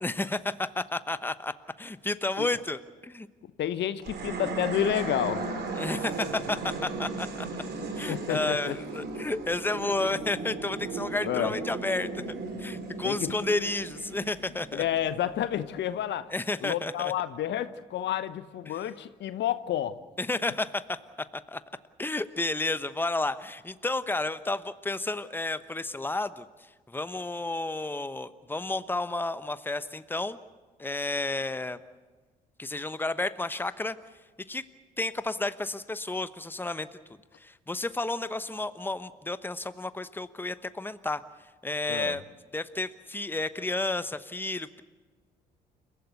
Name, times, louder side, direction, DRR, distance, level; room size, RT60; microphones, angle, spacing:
voice 1, 0.0-3.3 5.7-7.5 8.0-12.2 12.6-14.8 16.3-17.1 18.7-18.8 20.2-21.6 22.0-26.5 26.9-30.4 30.8-31.8 32.6-34.0 34.5-34.6 35.0-36.9 37.4-41.2 41.6-42.2 42.5-44.8, left 2 dB, 10° left, 13 dB, 1.1 m, -31 dB
voice 2, 3.6-5.5 8.1-8.7 11.2-11.5 13.0-13.3 14.7-16.3 16.6-20.0 41.9-42.2, left 11 dB, 60° left, 13 dB, 1.0 m, -30 dB
sound 1, 4.0-15.4, right 3 dB, 55° right, 3.9 m, -36 dB
29.5 x 15.5 x 8.1 m, 1.3 s
hypercardioid pair, 45°, 21 cm